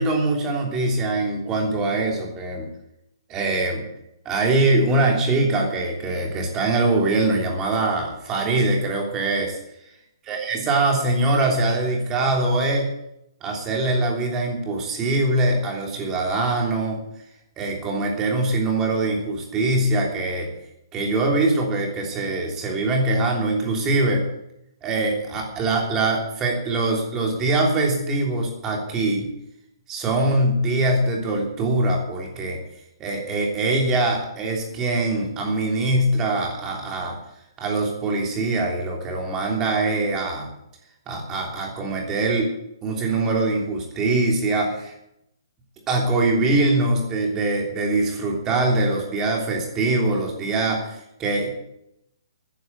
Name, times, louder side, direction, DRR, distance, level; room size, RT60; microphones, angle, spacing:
voice 1, 0.0-2.7 3.3-3.8 4.2-9.6 10.3-12.9 13.4-17.0 17.6-20.5 20.9-24.2 24.8-29.3 29.9-32.6 33.0-37.2 37.6-40.5 41.1-42.5 42.8-44.9 45.9-51.5, right 2 dB, 15° right, 0 dB, 3.2 m, -23 dB
13.5 x 10.0 x 8.2 m, 0.82 s
hypercardioid pair, 170°, 2 cm